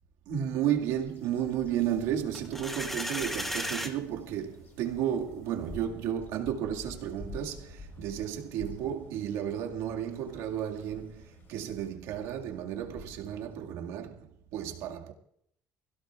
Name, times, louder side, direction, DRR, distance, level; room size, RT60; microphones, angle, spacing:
voice 1, 0.3-15.1, right 10 dB, 85° right, 2.1 m, -33 dB
Bird vocalization bird call bird song, 0.7-14.0, left 3 dB, 35° left, 4.7 m, -51 dB
sound 1, 2.3-3.9, equal, 5° left, 1.6 m, -34 dB
26.0 x 16.5 x 2.5 m
cardioid pair, 140°, 6 cm